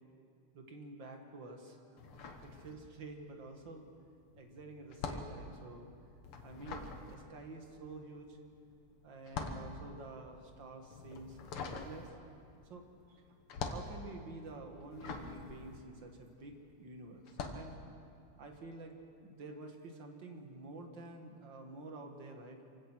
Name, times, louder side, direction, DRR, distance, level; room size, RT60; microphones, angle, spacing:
voice 1, 0.5-1.8 2.2-3.9 4.4-5.9 6.4-8.4 9.0-12.1 12.7-12.8 13.1-13.2 13.7-17.8 18.4-22.6, right 2 dB, 55° right, 4 dB, 2.4 m, -49 dB
sound 1, 2.0-3.2 3.5-16.7 17.2-17.7, left 4 dB, 80° left, 2.2 m, -44 dB
Bass guitar, 4.3-10.6, left 7 dB, 25° left, 4.4 m, -70 dB
26.0 x 16.5 x 6.3 m, 2.5 s
omnidirectional pair, 2.4 m